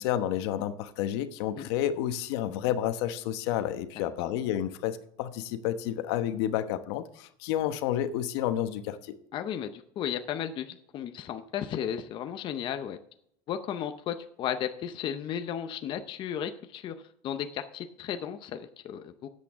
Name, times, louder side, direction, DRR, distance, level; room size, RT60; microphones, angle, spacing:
voice 1, 0.0-9.2, left 11 dB, 70° left, 1.0 m, -30 dB
voice 2, 9.3-13.0 13.5-19.3, left 9 dB, 35° left, 0.7 m, -34 dB
13.0 x 8.5 x 3.6 m
supercardioid pair, 145°, 14 cm